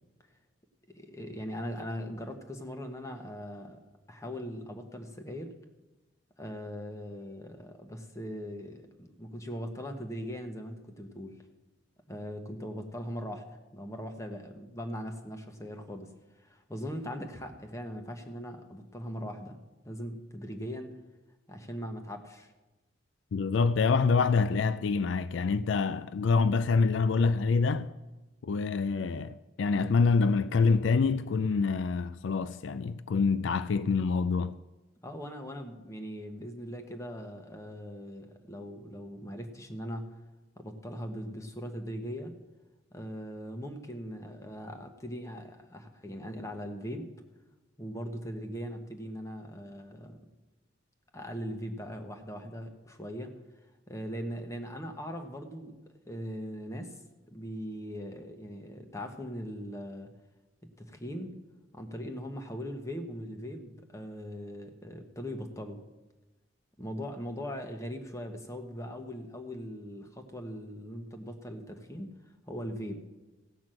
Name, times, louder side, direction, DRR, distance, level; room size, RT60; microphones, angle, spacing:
voice 1, 0.9-3.8 4.1-5.5 6.4-11.4 12.1-19.6 19.8-21.0 21.5-22.5 35.0-40.1 40.6-42.3 42.9-47.1 47.8-50.2 51.1-53.3 53.9-55.8 56.0-56.9 57.3-60.1 60.8-61.3 61.7-65.8 66.8-72.1 72.5-73.1, equal, 15° left, 1.1 m, -40 dB
voice 2, 23.3-27.9 28.4-34.6, left 4 dB, 80° left, 0.4 m, -26 dB
15.5 x 6.1 x 7.6 m
head